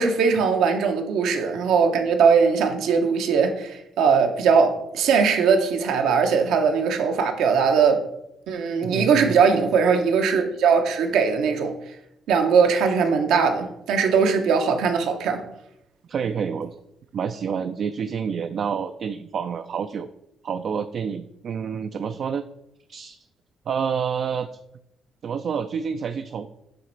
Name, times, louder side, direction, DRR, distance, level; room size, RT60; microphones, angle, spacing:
voice 1, 0.0-8.1 8.5-11.7 12.3-15.4, right 5 dB, 85° right, 0.8 m, -20 dB
voice 2, 8.8-9.4 16.1-16.8 17.1-20.1 20.4-22.4 22.9-23.2 23.7-24.5 25.2-26.5, right 7 dB, 60° right, 0.3 m, -28 dB
7.8 x 3.2 x 4.4 m
cardioid pair, 90°, 0 cm